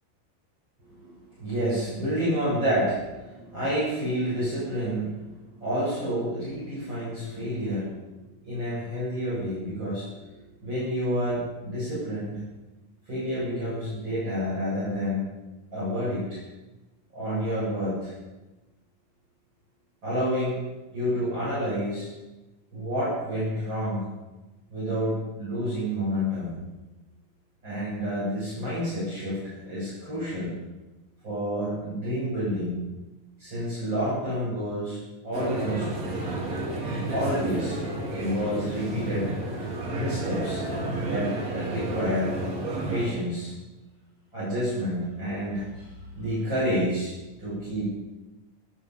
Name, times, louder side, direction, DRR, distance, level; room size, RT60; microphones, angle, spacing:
voice 1, 0.8-12.4 13.1-15.2 15.7-16.4 17.1-18.1 20.0-20.6 20.9-22.1 22.7-24.1 24.7-26.6 27.6-30.5 31.2-32.9 33.4-35.9 37.1-37.8 38.1-39.3 39.9-40.6 41.0-42.3 42.9-43.5 44.3-47.1 47.4-47.9, equal, 30° right, -9 dB, 7.5 m, -29 dB
sound 1, 35.3-43.1, right 2 dB, 50° right, 4.1 m, -31 dB
19.5 x 12.0 x 5.4 m, 1.1 s
omnidirectional pair, 4.0 m